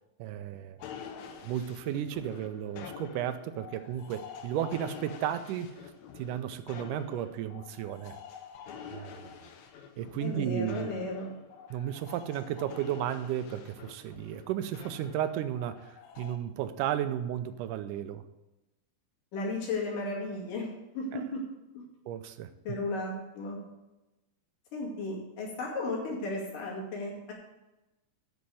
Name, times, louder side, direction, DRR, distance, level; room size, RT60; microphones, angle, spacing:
voice 1, 0.2-0.8 1.4-5.7 6.2-8.2 8.9-9.3 10.0-10.9 11.7-18.2 21.1-21.2 22.1-22.5, right 11 dB, 90° right, 11 dB, 2.2 m, -34 dB
sound 1, 0.8-16.4, left 6 dB, 70° left, 2.0 m, -47 dB
voice 2, 10.2-11.3 19.3-20.7 20.9-21.4 21.7-21.8 22.7-23.6 24.7-27.3, left 2 dB, 90° left, -2 dB, 4.1 m, -34 dB
8.6 x 6.4 x 7.6 m, 1.0 s
omnidirectional pair, 3.6 m